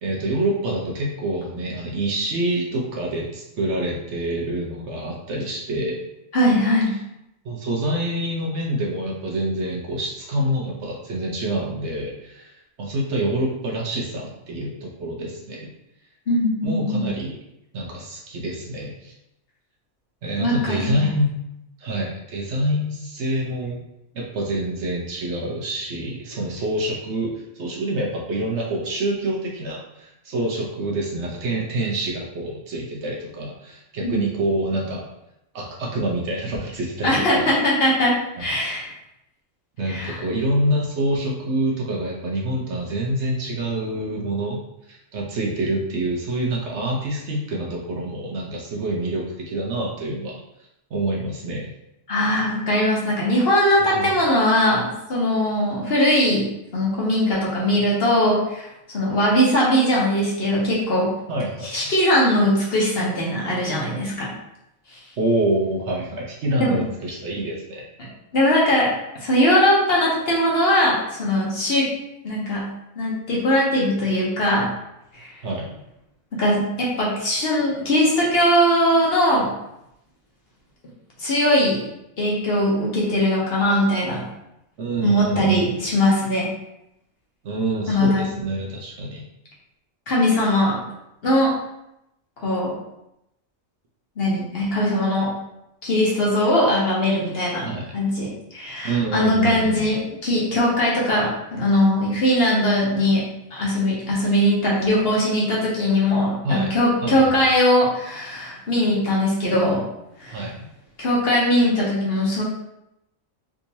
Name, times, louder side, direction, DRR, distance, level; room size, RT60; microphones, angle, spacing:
voice 1, 0.0-6.0 7.4-12.5 12.8-15.7 16.6-17.3 17.7-19.1 20.2-21.4 21.8-23.8 24.1-35.0 35.5-37.5 38.4-38.5 39.8-44.6 44.9-50.4 50.9-51.7 53.8-54.1 61.3-61.7 65.2-67.8 75.4-75.7 84.8-85.8 87.4-89.2 97.6-97.9 98.8-99.9 106.4-106.7 107.0-107.2 110.3-110.5, right 1 dB, 60° right, -2 dB, 0.9 m, -26 dB
voice 2, 6.3-6.9 16.3-17.1 20.4-21.1 34.0-34.2 37.0-38.9 39.9-40.2 52.1-56.5 56.7-61.1 61.6-64.3 64.9-65.0 66.6-66.8 68.0-68.9 69.2-71.9 72.2-72.7 73.0-74.7 75.1-75.3 76.3-79.5 81.2-81.8 82.2-84.2 85.0-86.5 87.9-88.3 90.1-90.8 91.2-91.5 92.4-92.7 94.2-95.3 95.8-97.7 97.9-103.2 103.5-109.8 110.2-110.4 111.0-112.4, left 1 dB, 50° left, -5 dB, 0.9 m, -20 dB
3.5 x 2.9 x 2.7 m, 0.86 s
omnidirectional pair, 1.4 m